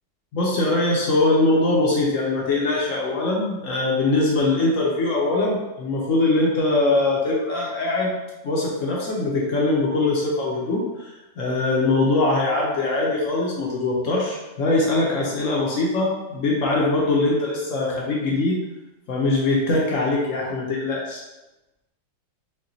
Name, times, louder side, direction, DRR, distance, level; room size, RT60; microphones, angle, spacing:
voice 1, 0.3-8.2 8.4-18.6 19.1-21.2, left 2 dB, 65° left, -3 dB, 0.8 m, -22 dB
5.7 x 2.2 x 2.6 m, 1.0 s
omnidirectional pair, 2.0 m